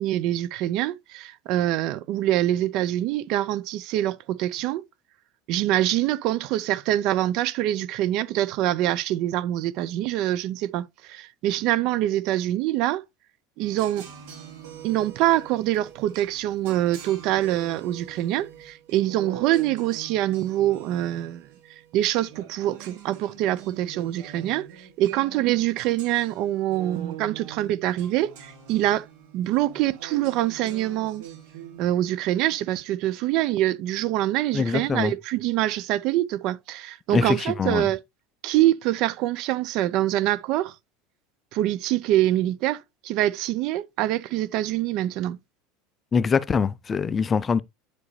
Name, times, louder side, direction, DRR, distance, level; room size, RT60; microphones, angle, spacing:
voice 1, 0.0-4.8 5.5-13.0 13.6-14.1 14.8-21.5 21.9-29.1 29.3-31.2 31.8-38.0 38.4-40.7 41.5-45.4, right 14 dB, 55° right, 0.6 m, -25 dB
sound 1, 13.6-31.8, right 8 dB, 80° right, 2.7 m, -44 dB
voice 2, 34.5-35.1 37.1-37.9 46.1-47.6, left 5 dB, 20° left, 0.4 m, -23 dB
9.5 x 4.9 x 3.2 m
supercardioid pair, 145°, 0 cm